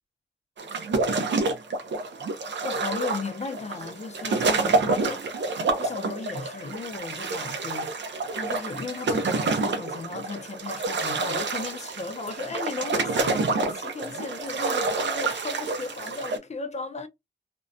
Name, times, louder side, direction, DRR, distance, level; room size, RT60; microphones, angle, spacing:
sound 1, 0.6-16.4, right 3 dB, 80° right, 0.6 m, -28 dB
voice 1, 2.6-5.2 5.8-7.9 8.3-17.1, left 4 dB, 35° left, 0.5 m, -35 dB
2.6 x 2.1 x 2.5 m
wide cardioid pair, 150°, 19 cm